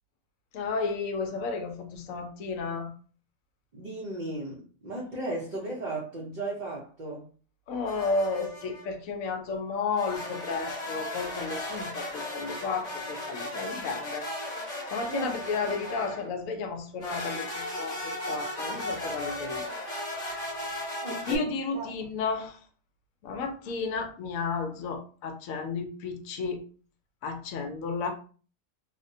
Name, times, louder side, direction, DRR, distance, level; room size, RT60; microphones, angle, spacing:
voice 1, 0.5-2.9 7.7-14.3 14.9-19.7 20.4-20.8 21.3-22.6 23.2-26.6 27.2-28.1, left 4 dB, 75° left, 0.9 m, -32 dB
voice 2, 3.7-7.3 15.1-15.4 21.0-21.9, right 2 dB, 50° right, 0.6 m, -35 dB
sound 1, 7.9-8.9 10.0-16.4 17.0-21.4, left 1 dB, 35° left, 1.0 m, -36 dB
3.4 x 2.1 x 2.6 m
omnidirectional pair, 1.4 m